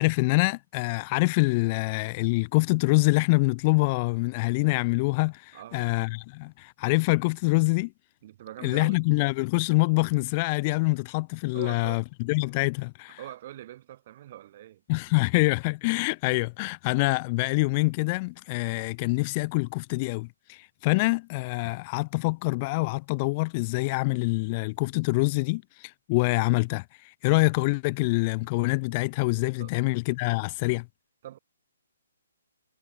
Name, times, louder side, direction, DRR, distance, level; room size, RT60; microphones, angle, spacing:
voice 1, 0.0-7.9 8.6-12.0 12.3-13.2 14.9-30.9, left 26 dB, 30° left, 0.6 m, -25 dB
voice 2, 5.5-5.9 8.2-9.1 11.5-12.0 13.1-14.8 29.6-29.7 31.2-31.4, right 13 dB, 40° right, 7.0 m, -43 dB
figure-of-eight pair, 140°, 0 cm